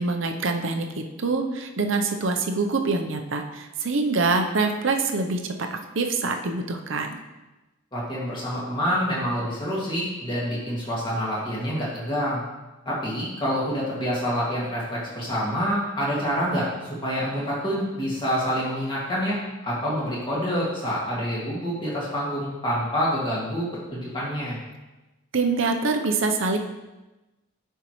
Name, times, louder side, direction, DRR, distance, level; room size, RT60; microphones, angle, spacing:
voice 1, 0.0-7.1 25.3-26.6, right 3 dB, 60° right, 5 dB, 0.7 m, -25 dB
voice 2, 7.9-12.4 12.9-19.4 19.6-24.6, equal, 20° left, -7 dB, 2.0 m, -27 dB
11.0 x 4.5 x 3.1 m, 1.1 s
head